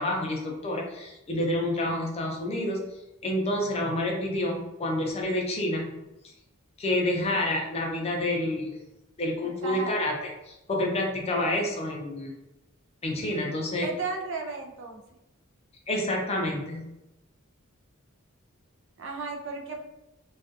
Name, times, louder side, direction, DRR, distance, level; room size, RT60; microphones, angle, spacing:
voice 1, 0.0-2.8 3.2-5.9 6.8-8.7 9.2-10.1 10.5-12.3 13.0-13.9 15.9-16.9, left 1 dB, 30° left, 0 dB, 0.5 m, -28 dB
voice 2, 9.4-9.9 13.8-15.0 19.0-19.8, right 3 dB, 65° right, 1 dB, 0.4 m, -34 dB
2.3 x 2.3 x 2.6 m, 0.94 s
head